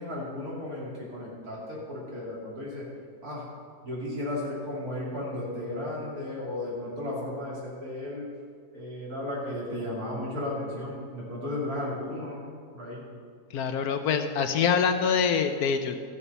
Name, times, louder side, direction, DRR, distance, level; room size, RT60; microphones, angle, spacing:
voice 1, 0.0-2.9 3.2-3.5 3.8-8.3 8.7-12.4 12.7-13.0, left 1 dB, 60° right, -6 dB, 3.5 m, -34 dB
voice 2, 13.5-16.0, left 6 dB, 70° left, 8 dB, 1.2 m, -25 dB
13.5 x 7.1 x 5.5 m, 2.2 s
omnidirectional pair, 1.7 m